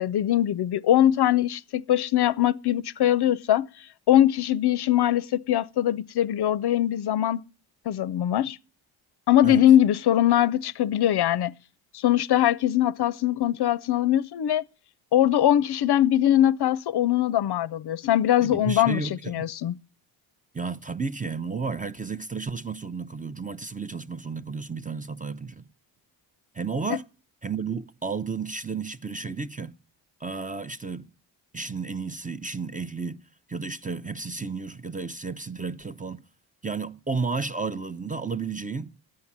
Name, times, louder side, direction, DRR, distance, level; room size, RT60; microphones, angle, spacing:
voice 1, 0.0-3.7 4.1-7.4 7.9-8.6 9.3-11.5 11.9-14.6 15.1-19.7 26.9-27.0, left 12 dB, 55° left, 0.6 m, -22 dB
voice 2, 18.4-19.5 20.5-25.6 26.5-27.0 27.4-29.7 30.2-31.1 31.5-33.2 33.5-36.2 36.6-38.9, right 4 dB, 15° right, 0.6 m, -32 dB
10.5 x 8.6 x 7.2 m
supercardioid pair, 55°, 49 cm